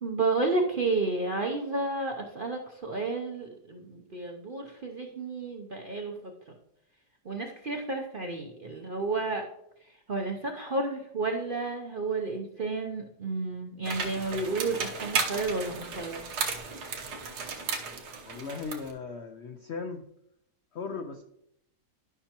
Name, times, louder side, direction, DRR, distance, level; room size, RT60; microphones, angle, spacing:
voice 1, 0.0-6.5 7.2-9.5 9.8-16.2, right 3 dB, 55° right, 2 dB, 0.6 m, -31 dB
sound 1, 13.8-18.9, right 5 dB, 70° right, 1.5 m, -34 dB
voice 2, 18.2-20.0 20.7-21.2, left 4 dB, 70° left, 6 dB, 0.6 m, -37 dB
12.0 x 5.6 x 2.9 m, 0.76 s
omnidirectional pair, 1.8 m